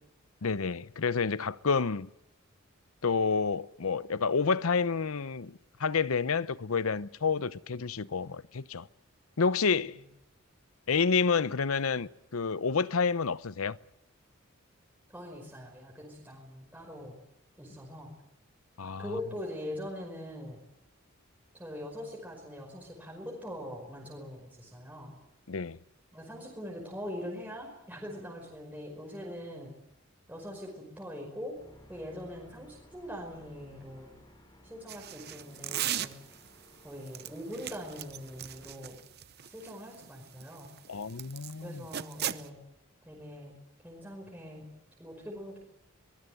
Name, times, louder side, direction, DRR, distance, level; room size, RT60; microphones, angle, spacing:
voice 1, 0.4-2.1 3.0-8.9 9.4-10.0 10.9-13.8 18.8-19.2 25.5-25.8 40.9-41.8, left 5 dB, 90° left, 0.8 m, -29 dB
voice 2, 15.1-17.2 17.6-18.1 19.0-20.6 21.5-25.1 26.1-29.7 30.3-31.6 31.9-34.1 34.6-36.2 36.8-39.0 39.5-40.7 41.6-42.6 43.1-43.5 43.8-44.7 45.0-45.6, equal, 10° right, 5.3 m, -42 dB
sound 1, 31.5-38.8, left 1 dB, 20° left, 4.3 m, -57 dB
sound 2, 34.9-36.5 37.1-41.5 41.9-42.5, right 11 dB, 50° right, 0.8 m, -37 dB
23.5 x 20.0 x 7.9 m
head